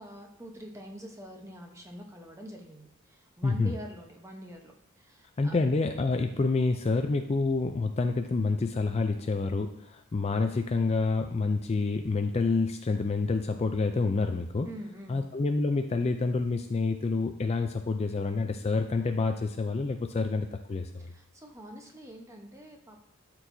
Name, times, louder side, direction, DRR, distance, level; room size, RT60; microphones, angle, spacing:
voice 1, 0.0-5.6 14.6-15.2 21.0-23.0, equal, 15° right, 2 dB, 0.9 m, -45 dB
voice 2, 3.4-3.7 5.4-14.7 15.1-21.1, left 3 dB, 30° left, 6 dB, 0.3 m, -28 dB
12.5 x 4.5 x 2.7 m, 0.81 s
head